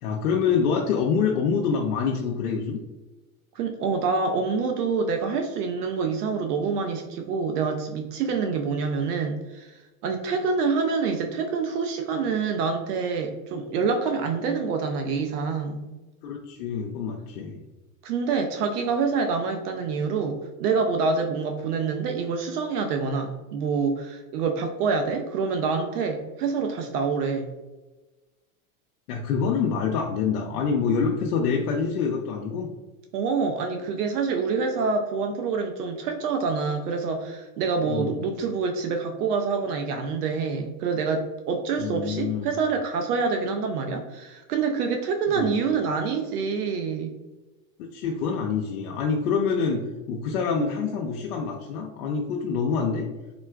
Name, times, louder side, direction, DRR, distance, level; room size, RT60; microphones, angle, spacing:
voice 1, 0.0-2.8 16.2-17.6 29.1-32.7 37.8-38.1 41.8-42.5 45.3-45.5 47.8-53.1, left 5 dB, 80° left, 0 dB, 0.6 m, -26 dB
voice 2, 3.5-15.9 18.0-27.5 33.1-47.2, right 5 dB, 85° right, 4 dB, 0.5 m, -26 dB
3.6 x 2.3 x 2.3 m, 1.1 s
hypercardioid pair, 115°, 45 cm